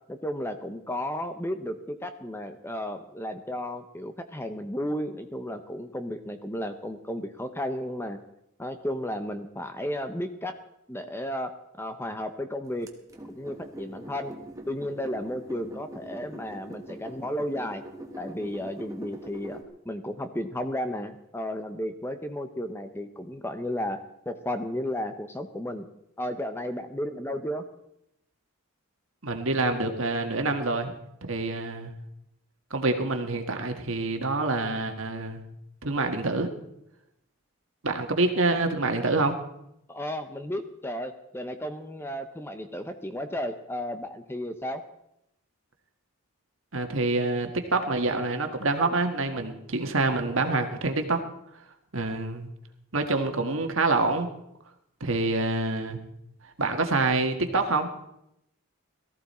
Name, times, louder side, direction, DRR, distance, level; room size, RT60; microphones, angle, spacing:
voice 1, 0.1-8.2 8.6-10.5 10.9-11.5 11.8-12.9 13.3-14.3 14.7-17.8 18.2-19.6 19.8-24.0 24.3-25.9 26.2-27.6 39.9-44.8, left 1 dB, 10° left, 8 dB, 0.7 m, -33 dB
sound 1, 12.9-19.6, right 1 dB, 15° right, 1.3 m, -43 dB
voice 2, 29.2-30.9 31.2-31.9 32.7-35.4 35.8-36.5 37.8-39.4 46.7-51.2 51.9-52.5 52.9-54.3 55.0-56.0 56.6-57.9, right 3 dB, 60° right, 5 dB, 1.6 m, -26 dB
18.0 x 14.0 x 4.3 m, 0.80 s
head